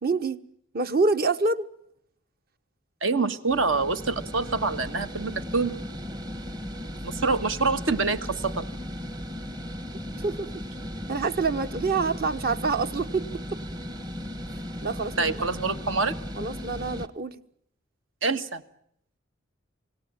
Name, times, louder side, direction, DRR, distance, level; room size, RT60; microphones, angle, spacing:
voice 1, 0.0-0.4 0.7-1.7 7.3-7.4 10.2-10.5 11.1-13.3 14.8-15.4 16.4-17.4, right 4 dB, 50° right, 1.2 m, -26 dB
voice 2, 3.0-5.8 7.0-8.7 15.2-16.1 18.2-18.6, right 4 dB, 75° right, 1.6 m, -26 dB
sound 1, 3.5-17.1, equal, 20° right, 1.0 m, -36 dB
28.0 x 18.5 x 8.9 m
head